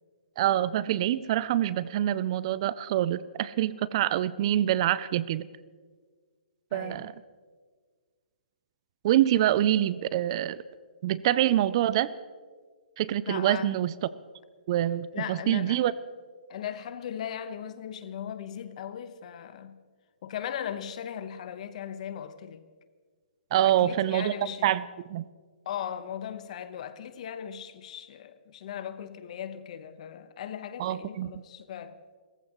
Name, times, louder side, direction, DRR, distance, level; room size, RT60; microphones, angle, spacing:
voice 1, 0.4-5.5 6.7-7.1 9.0-10.6 11.0-12.1 13.0-13.9 14.7-15.9 23.5-24.3 24.6-24.8 25.1-25.3 30.8-31.3, right 12 dB, 35° right, 0.4 m, -25 dB
voice 2, 6.7-7.2 13.3-13.8 15.1-15.8 16.5-19.8 20.2-22.7 23.6-24.7 25.6-32.0, left 9 dB, 45° left, 1.0 m, -38 dB
30.0 x 15.0 x 3.1 m
hypercardioid pair, 160°, 5 cm